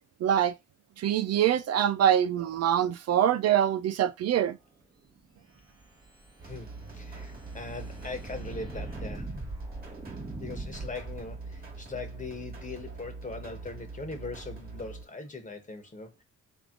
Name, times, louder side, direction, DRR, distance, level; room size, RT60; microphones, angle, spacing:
voice 1, 0.2-0.5 1.0-4.6, right 10 dB, 55° right, 0.4 m, -24 dB
sound 1, 5.4-11.8, right 2 dB, 15° right, 1.1 m, -42 dB
sound 2, 6.4-15.0, right 3 dB, 30° right, 1.6 m, -43 dB
voice 2, 7.0-9.3 10.4-16.2, left 3 dB, 25° left, 1.3 m, -40 dB
3.6 x 3.1 x 3.7 m
cardioid pair, 90°, 30 cm